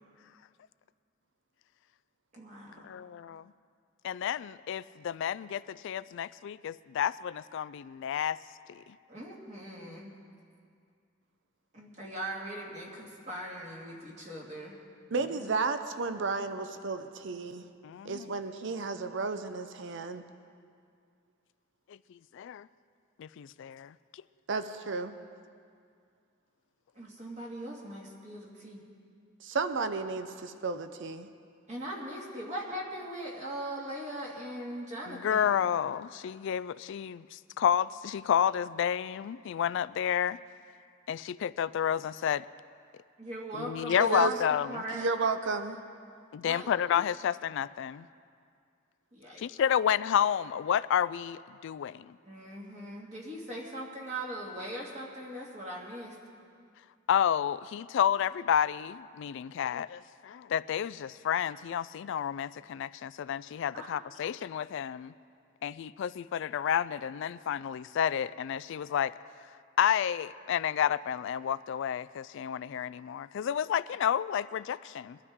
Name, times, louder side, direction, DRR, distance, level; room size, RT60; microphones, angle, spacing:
voice 1, 2.3-2.9 9.1-10.1 11.7-14.8 27.0-28.8 31.7-35.6 43.2-45.0 46.4-46.8 49.1-49.5 52.2-56.1 63.7-64.0, right 1 dB, 35° right, -3 dB, 2.2 m, -40 dB
voice 2, 2.8-3.4 4.0-8.4 17.8-18.3 22.3-22.7 23.2-23.9 35.1-40.4 41.1-42.4 43.5-44.8 46.3-48.1 49.4-52.1 57.1-65.1 65.6-69.1 69.8-75.2, left 9 dB, 60° left, 17 dB, 0.3 m, -30 dB
voice 3, 15.1-17.7 18.0-20.2 24.5-25.1 29.4-31.3 44.0-44.3 44.9-45.8, right 4 dB, 60° right, 10 dB, 0.7 m, -32 dB
22.5 x 12.5 x 3.6 m, 2.3 s
head